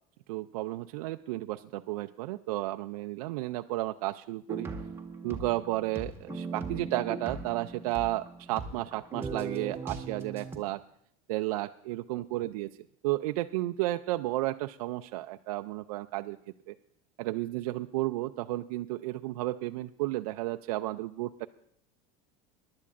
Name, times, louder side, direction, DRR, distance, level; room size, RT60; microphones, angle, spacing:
voice 1, 0.3-4.7 5.2-10.8 11.3-12.7 13.0-16.4 16.7-16.8 17.2-21.5, right 17 dB, 85° right, 8 dB, 0.4 m, -33 dB
sound 1, 4.5-10.6, right 4 dB, 15° right, 1.5 m, -39 dB
23.0 x 11.5 x 2.5 m, 0.70 s
supercardioid pair, 120°, 18 cm